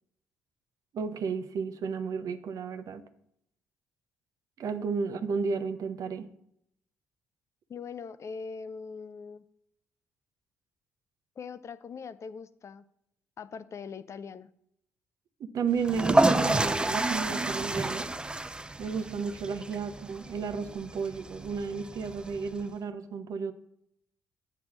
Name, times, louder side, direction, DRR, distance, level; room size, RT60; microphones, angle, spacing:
voice 1, 0.9-3.0 4.6-6.3 15.4-18.1 18.8-23.5, right 5 dB, 55° right, 8 dB, 0.9 m, -33 dB
voice 2, 7.7-9.4 11.4-12.8 13.4-14.5 19.4-19.6, left 5 dB, 45° left, 14 dB, 0.5 m, -41 dB
sound 1, 15.8-22.6, right 2 dB, 15° right, 0.5 m, -29 dB
8.6 x 3.5 x 6.1 m, 0.74 s
hypercardioid pair, 45°, 7 cm